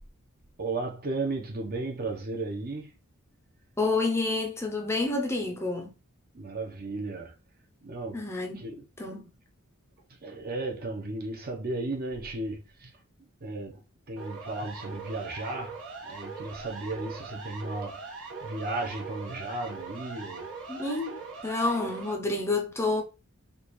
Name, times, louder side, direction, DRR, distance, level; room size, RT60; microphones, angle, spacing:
voice 1, 0.6-2.9 6.3-7.3 7.8-8.2 8.6-8.8 10.2-12.9 13.4-13.8 14.1-18.0 18.4-20.5, right 2 dB, 45° right, 0.8 m, -34 dB
voice 2, 3.8-6.0 8.1-8.7 9.0-9.3 20.7-23.0, left 3 dB, 10° left, 0.6 m, -29 dB
Siren, 14.2-22.1, right 4 dB, 75° right, 1.3 m, -41 dB
4.8 x 2.4 x 3.1 m
head